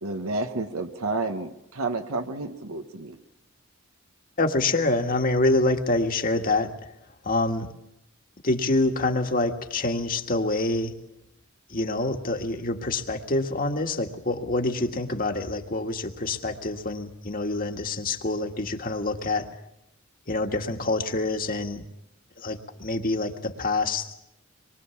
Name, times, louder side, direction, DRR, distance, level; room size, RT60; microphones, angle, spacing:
voice 1, 0.0-3.2, right 3 dB, 90° right, 6 dB, 1.4 m, -30 dB
voice 2, 4.4-6.7 7.2-7.7 8.4-10.9 11.7-19.5 20.3-21.8 22.4-24.1, left 2 dB, 40° left, 5 dB, 1.9 m, -26 dB
26.0 x 23.5 x 7.2 m, 0.81 s
head